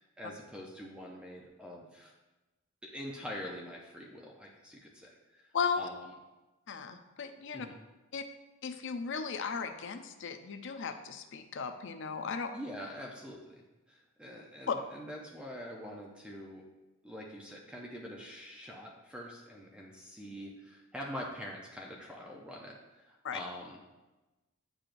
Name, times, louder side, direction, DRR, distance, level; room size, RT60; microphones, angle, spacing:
voice 1, 0.0-2.1 2.8-5.5 5.8-6.0 7.5-7.7 12.5-13.6 13.9-16.6 17.0-23.8, equal, 5° right, -2 dB, 0.6 m, -45 dB
voice 2, 5.5-5.9 6.7-7.7 8.1-8.2 8.6-12.5 14.7-14.8 23.2-23.4, left 5 dB, 60° left, 8 dB, 0.5 m, -36 dB
8.8 x 4.8 x 2.5 m, 1.1 s
head